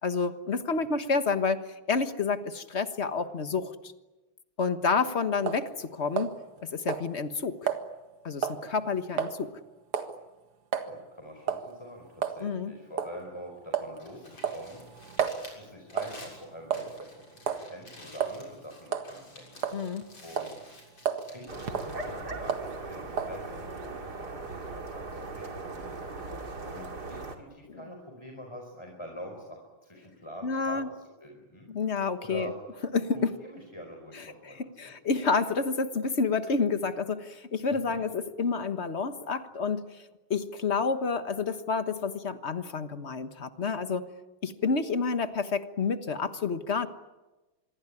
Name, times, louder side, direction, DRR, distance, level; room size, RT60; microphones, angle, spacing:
voice 1, 0.0-3.7 4.6-6.3 6.6-7.7 8.2-9.5 12.4-12.7 19.7-20.0 27.7-27.8 30.4-30.9 31.7-32.5 32.9-33.3 34.6-44.0 44.4-46.9, left 4 dB, 35° left, 10 dB, 1.3 m, -29 dB
sound 1, 5.5-5.7 6.2-6.6 6.9-7.1 7.7-7.8 8.4-8.6 9.2-9.4 9.9-10.2 10.7-10.9 11.5-11.7 12.2-12.4 13.0-13.2 13.7-14.0 14.4-15.4 16.0-16.2 16.7-17.0 17.5-17.7 18.2-18.4 18.9-19.1 19.6-20.0 20.4-20.6 21.1-21.3 21.7-21.9 22.5-22.7 23.2-23.4, right 8 dB, 80° right, 2.7 m, -31 dB
voice 2, 10.9-15.1 15.4-21.0 21.3-31.7 32.2-32.6 33.1-34.9 37.7-38.1, equal, 10° left, 2 dB, 4.7 m, -45 dB
Crumpling crinkling, 13.9-23.0, left 2 dB, 70° left, 7.9 m, -52 dB
sound 2, 21.5-27.4, right 3 dB, 45° right, 3.3 m, -39 dB
26.5 x 23.0 x 9.8 m, 1.1 s
omnidirectional pair, 2.4 m